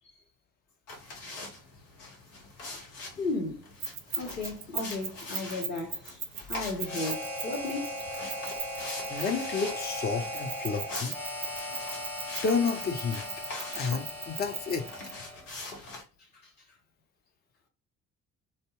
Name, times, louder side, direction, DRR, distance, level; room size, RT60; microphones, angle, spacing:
sound 1, 0.9-16.0, left 2 dB, 70° left, 0.9 m, -43 dB
voice 1, 3.2-3.7 4.2-6.0 6.5-8.0 15.7-15.9 16.4-16.5, left 3 dB, 90° left, 0.5 m, -35 dB
Keys jangling, 3.8-9.5 10.3-15.1, right 7 dB, 30° right, 0.5 m, -37 dB
Harmonica, 6.8-15.5, left 1 dB, 5° left, 0.9 m, -38 dB
voice 2, 9.1-11.2 12.4-13.2 13.7-14.9, left 5 dB, 25° left, 0.4 m, -30 dB
2.6 x 2.0 x 3.7 m
figure-of-eight pair, 45°, 47 cm